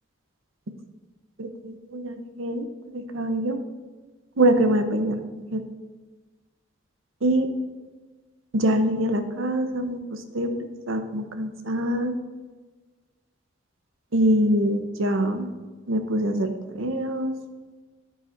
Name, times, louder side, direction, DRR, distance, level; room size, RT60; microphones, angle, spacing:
voice 1, 1.4-2.7 2.9-3.6 4.4-5.2 5.5-5.6 7.2-7.5 8.5-12.2 14.1-15.5 15.9-17.3, right 1 dB, 80° right, 7 dB, 0.9 m, -24 dB
11.0 x 9.3 x 2.6 m, 1.3 s
head